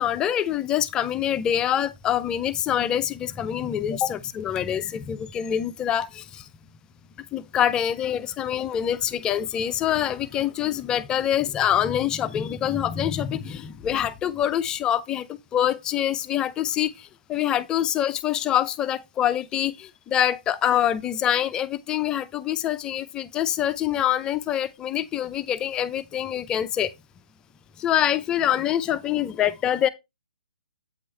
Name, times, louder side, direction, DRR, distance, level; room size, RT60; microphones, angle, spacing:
voice 1, 0.0-6.5 7.3-26.9 27.8-29.9, left 10 dB, 15° left, 0.5 m, -25 dB
8.6 x 4.6 x 4.0 m
figure-of-eight pair, 130°, 5 cm